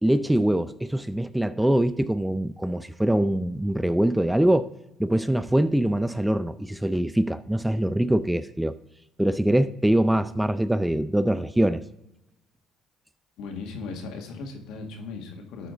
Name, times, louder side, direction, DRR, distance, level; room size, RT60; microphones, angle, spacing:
voice 1, 0.0-4.7 5.0-8.8 9.2-11.8, right 1 dB, 5° right, 14 dB, 0.4 m, -23 dB
voice 2, 13.4-15.7, left 4 dB, 70° left, 3 dB, 1.7 m, -37 dB
12.5 x 4.8 x 3.8 m, 0.88 s
supercardioid pair, 80°, 0 cm